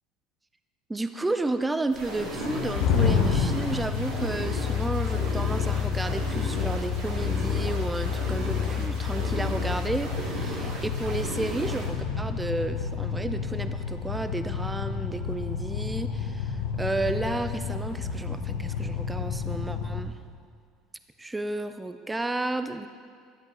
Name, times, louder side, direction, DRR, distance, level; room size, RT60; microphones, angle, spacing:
voice 1, 0.9-20.2 21.2-22.9, right 2 dB, 10° right, 10 dB, 0.5 m, -32 dB
sound 1, 1.9-11.9, right 1 dB, 75° right, 2.4 m, -36 dB
sound 2, 2.4-20.0, left 6 dB, 90° left, 1.2 m, -29 dB
11.5 x 8.0 x 3.5 m, 2.2 s
supercardioid pair, 100°, 0 cm